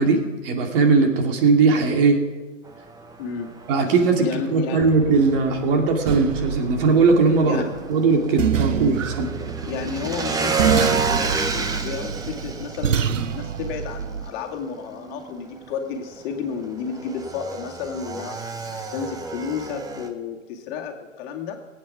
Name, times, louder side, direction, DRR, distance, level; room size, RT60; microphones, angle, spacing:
voice 1, 0.0-2.2 3.7-7.6 7.9-9.3, right 4 dB, 45° right, 4 dB, 2.4 m, -19 dB
Motorcycle / Engine, 2.7-20.1, right 4 dB, 10° right, 0.9 m, -31 dB
voice 2, 3.2-3.5 4.2-4.8 7.5-7.7 9.6-21.6, left 6 dB, 35° left, 1 dB, 2.2 m, -32 dB
sound 1, 4.8-14.3, right 8 dB, 80° right, 0.8 m, -27 dB
19.0 x 8.7 x 5.9 m, 1.3 s
hypercardioid pair, 120°, 38 cm